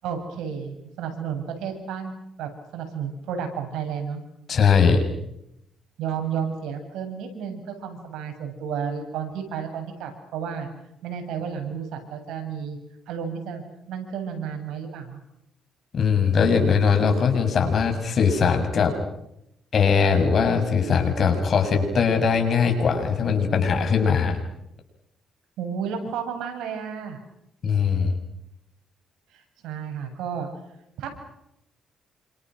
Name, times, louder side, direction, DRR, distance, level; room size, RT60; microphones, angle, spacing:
voice 1, 0.0-2.1 2.4-4.2 6.0-10.7 11.0-12.8 13.1-15.2 25.6-27.2 29.6-30.5 31.0-31.2, right 7 dB, 90° right, 5 dB, 7.7 m, -32 dB
voice 2, 4.5-5.0 15.9-18.9 19.7-24.4 27.6-28.1, left 6 dB, 50° left, 4 dB, 7.3 m, -20 dB
29.5 x 26.5 x 6.5 m, 0.81 s
cardioid pair, 90°, 0 cm